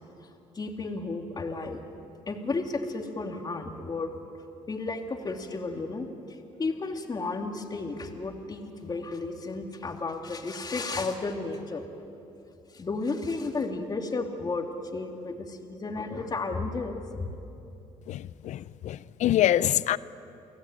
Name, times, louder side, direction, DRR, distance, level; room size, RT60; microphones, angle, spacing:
voice 1, 0.5-1.8 2.3-4.1 4.7-11.8 12.7-14.7 14.9-17.3, left 3 dB, 30° left, 3 dB, 2.8 m, -33 dB
voice 2, 18.1-20.0, left 12 dB, 65° left, 18 dB, 0.6 m, -25 dB
29.0 x 17.5 x 9.1 m, 2.8 s
cardioid pair, 95°, 13 cm